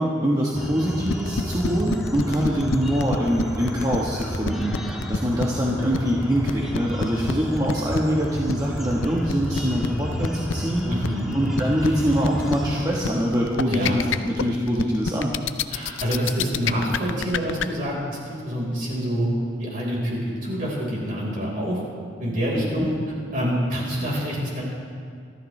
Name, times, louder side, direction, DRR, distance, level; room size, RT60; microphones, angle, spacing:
voice 1, 0.0-4.8 5.1-10.9 11.3-15.3 22.8-22.9, equal, 20° right, -4 dB, 1.3 m, -24 dB
sound 1, 0.6-12.9, equal, ahead, 1.4 m, -31 dB
sound 2, 1.1-17.7, left 6 dB, 85° left, 0.5 m, -27 dB
voice 2, 10.8-11.4 13.7-13.9 15.7-19.3 19.6-21.8 22.2-22.9 23.3-24.6, equal, 45° right, -4 dB, 4.5 m, -26 dB
26.0 x 13.5 x 3.3 m, 2.2 s
head